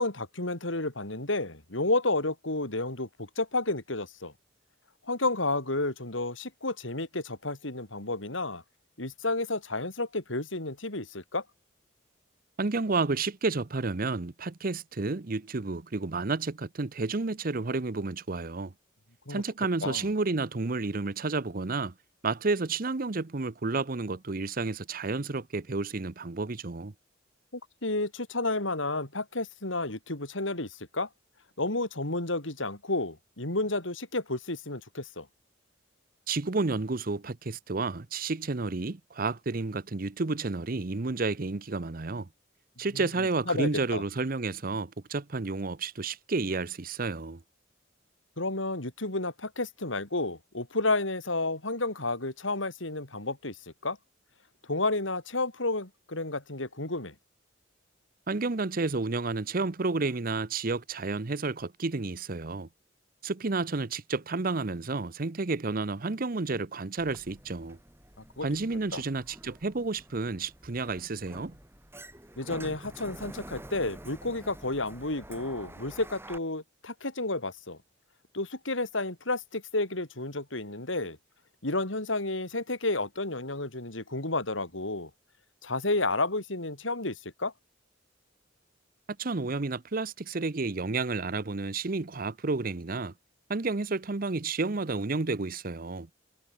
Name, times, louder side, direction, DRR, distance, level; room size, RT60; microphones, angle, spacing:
voice 1, 0.0-4.3 5.1-8.6 9.0-11.4 19.3-19.4 19.8-20.0 27.8-31.1 31.6-35.3 42.9-43.0 43.5-44.0 48.4-54.0 54.7-57.1 68.4-68.5 68.9-69.0 72.4-77.8 78.3-81.2 81.6-85.1 85.6-87.5, left 2 dB, 85° left, 4.7 m, -31 dB
voice 2, 12.6-18.7 19.3-21.9 22.2-26.9 36.3-42.3 42.8-47.4 58.3-62.7 63.2-67.8 68.4-71.5 89.2-93.1 93.5-96.1, right 3 dB, 45° right, 0.8 m, -31 dB
Sliding door, 67.0-76.4, right 1 dB, 10° right, 3.9 m, -48 dB
head